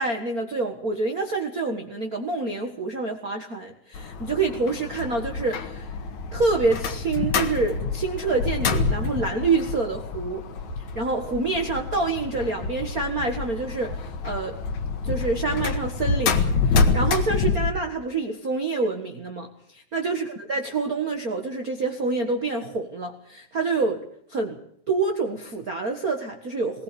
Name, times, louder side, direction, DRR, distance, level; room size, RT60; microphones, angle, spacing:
voice 1, 0.0-6.0 6.3-10.4 10.8-14.6 15.0-24.0 24.3-24.6 24.9-26.8, right 3 dB, 40° right, 3 dB, 1.5 m, -27 dB
sound 1, 3.9-17.7, left 4 dB, 70° left, 3.0 m, -27 dB
20.5 x 20.0 x 6.9 m, 0.69 s
omnidirectional pair, 3.5 m